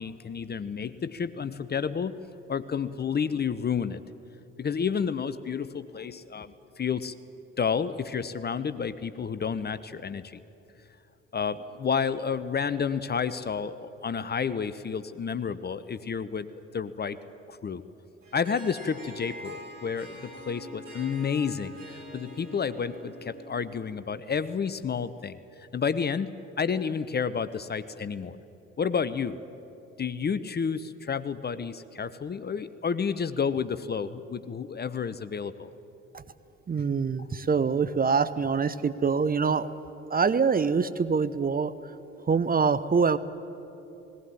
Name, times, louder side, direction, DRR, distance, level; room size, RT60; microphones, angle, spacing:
voice 1, 0.0-2.2 2.5-4.0 4.6-7.1 7.6-10.4 11.3-16.5 16.7-17.2 17.5-17.8 18.3-25.4 25.7-26.3 26.6-28.4 28.8-29.4 30.0-35.7, left 6 dB, 25° left, 14 dB, 0.8 m, -30 dB
Harp, 18.2-24.0, equal, 85° right, 3.2 m, -44 dB
voice 2, 36.7-39.7 40.1-41.7 42.3-43.2, right 5 dB, 25° right, 14 dB, 0.9 m, -24 dB
19.0 x 18.0 x 9.8 m, 2.9 s
figure-of-eight pair, 50°, 37 cm